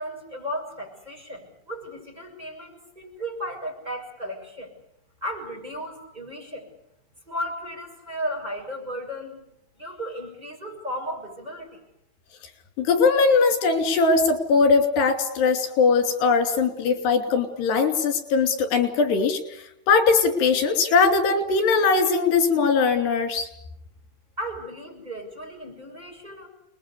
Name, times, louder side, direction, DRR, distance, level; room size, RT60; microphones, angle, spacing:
voice 1, 0.0-4.7 5.2-6.7 7.3-9.4 9.8-11.8 24.4-26.5, equal, 10° right, 0 dB, 6.7 m, -35 dB
voice 2, 12.8-19.4 19.9-23.5, left 4 dB, 90° left, 6 dB, 5.0 m, -20 dB
29.5 x 21.0 x 8.4 m, 0.78 s
omnidirectional pair, 4.6 m